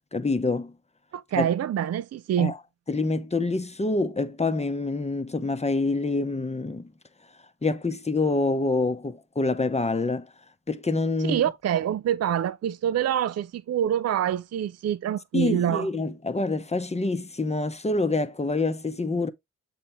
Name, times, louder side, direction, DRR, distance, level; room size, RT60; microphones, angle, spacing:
voice 1, 0.1-0.7 1.4-1.5 2.4-2.6 2.9-6.9 7.6-10.3 10.7-11.4 15.3-19.3, left 3 dB, 20° left, 0.8 m, -26 dB
voice 2, 1.1-2.5 11.2-15.9, right 10 dB, 50° right, 0.4 m, -26 dB
7.1 x 4.3 x 3.4 m
cardioid pair, 65°, 32 cm